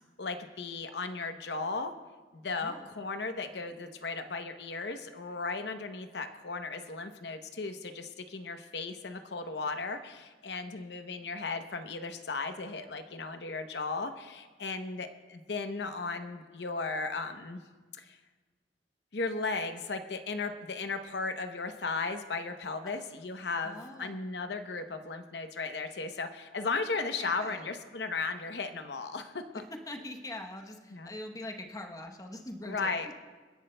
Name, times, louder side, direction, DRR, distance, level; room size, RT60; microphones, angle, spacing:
voice 1, 0.2-1.9 2.3-17.6 17.9-18.2 19.1-29.4 30.9-31.1 32.6-33.1, left 4 dB, 65° left, 7 dB, 0.8 m, -36 dB
voice 2, 2.6-2.9 22.8-22.9 23.6-24.3 27.2-27.7 29.5-33.0, left 1 dB, 20° left, 3 dB, 0.9 m, -43 dB
29.0 x 10.5 x 2.2 m, 1.3 s
head